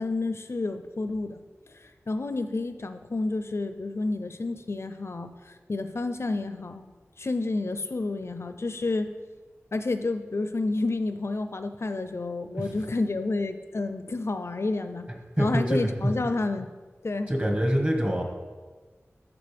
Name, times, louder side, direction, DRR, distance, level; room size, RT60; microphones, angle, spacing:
voice 1, 0.0-1.4 1.7-6.9 7.2-9.1 9.7-15.1 15.4-16.7 17.0-17.3, left 3 dB, 60° left, 9 dB, 0.5 m, -30 dB
voice 2, 15.4-16.1 17.3-18.2, equal, 30° right, 0 dB, 1.6 m, -25 dB
13.0 x 4.3 x 3.5 m, 1.3 s
wide cardioid pair, 60°, 5 cm